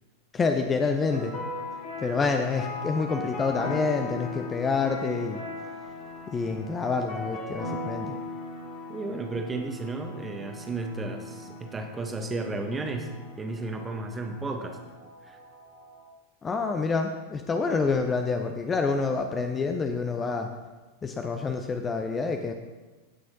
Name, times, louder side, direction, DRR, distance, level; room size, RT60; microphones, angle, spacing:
voice 1, 0.3-1.4 2.0-5.4 6.3-8.2 16.4-20.5 21.0-22.5, left 4 dB, 20° left, 5 dB, 0.6 m, -27 dB
sound 1, 1.1-16.0, left 2 dB, 40° left, 2.1 m, -39 dB
voice 2, 8.9-13.1 13.4-14.8 15.2-15.4, right 3 dB, 15° right, 4 dB, 1.1 m, -33 dB
16.5 x 6.2 x 2.9 m, 1.2 s
figure-of-eight pair, 90°, 0 cm